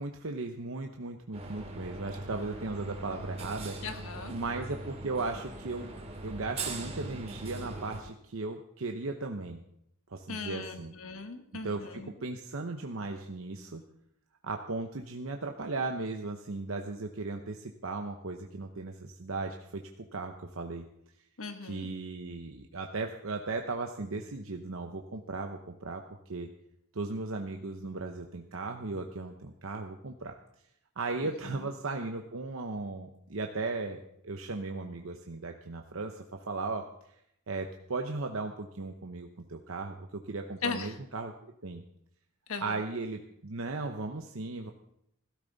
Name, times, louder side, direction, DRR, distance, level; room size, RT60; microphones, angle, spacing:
voice 1, 0.0-3.8 4.3-5.9 6.2-9.6 10.1-10.9 11.6-13.8 14.4-20.9 21.6-26.5 26.9-30.3 31.0-36.9 37.5-41.8 42.6-44.7, right 3 dB, 65° right, 4 dB, 0.9 m, -37 dB
sound 1, 1.3-8.0, right 2 dB, 30° right, 2.4 m, -41 dB
voice 2, 3.8-4.3 10.3-12.1 21.4-21.9 31.2-31.6 40.6-40.9 42.5-42.8, left 5 dB, 80° left, 7 dB, 1.5 m, -38 dB
16.0 x 13.5 x 4.0 m, 0.76 s
head